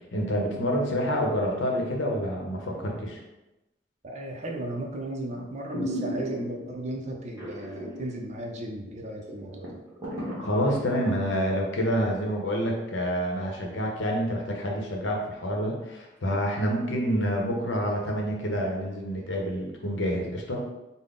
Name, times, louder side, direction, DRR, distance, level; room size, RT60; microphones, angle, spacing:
voice 1, 0.1-3.2 10.4-20.7, equal, 70° left, 0 dB, 0.8 m, -28 dB
voice 2, 4.0-9.8, right 1 dB, 35° right, 1 dB, 0.5 m, -35 dB
sound 1, 4.5-4.9 5.3-5.4 5.7-6.7 7.4-8.1 8.4-8.5 8.9-9.0 9.3-11.2 11.6-11.7, equal, 15° right, 1.2 m, -34 dB
3.8 x 2.1 x 3.6 m, 0.97 s
head